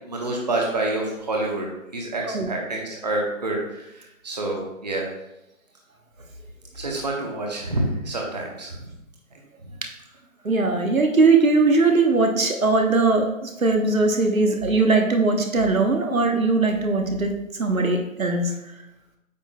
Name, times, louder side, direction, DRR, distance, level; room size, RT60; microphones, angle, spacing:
voice 1, 0.0-1.7 1.9-3.8 4.2-5.0 6.7-8.7, right 2 dB, 30° right, -1 dB, 0.9 m, -27 dB
voice 2, 10.4-18.5, right 3 dB, 75° right, 3 dB, 1.1 m, -20 dB
8.8 x 6.3 x 2.2 m, 0.89 s
figure-of-eight pair, 155°, 42 cm